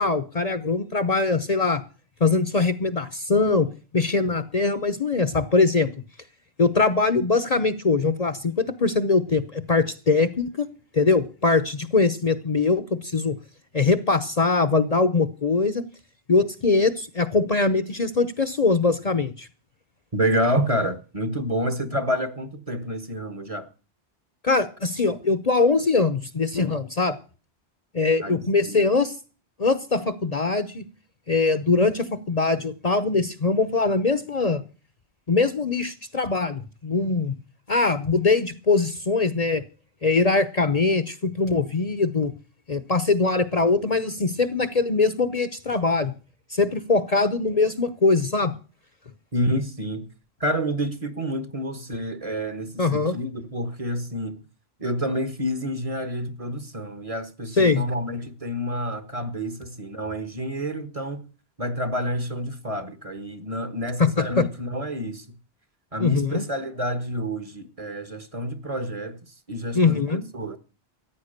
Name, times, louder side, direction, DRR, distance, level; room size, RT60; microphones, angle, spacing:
voice 1, 0.0-1.8 2.2-5.9 6.6-10.7 10.9-13.4 13.7-15.8 16.3-19.5 24.4-27.2 27.9-29.2 29.6-30.8 31.3-34.6 35.3-37.3 37.7-39.6 40.0-42.3 42.7-46.1 46.5-48.5 52.8-53.1 57.6-57.9 64.0-64.1 64.4-64.5 66.0-66.4 69.7-70.3, left 3 dB, 40° left, 0.9 m, -22 dB
voice 2, 20.1-23.7 28.2-28.9 49.3-50.1 50.4-54.4 54.8-61.2 61.6-65.2 65.9-69.2 69.5-70.6, equal, 35° right, 1.4 m, -28 dB
14.5 x 9.4 x 6.6 m
omnidirectional pair, 1.1 m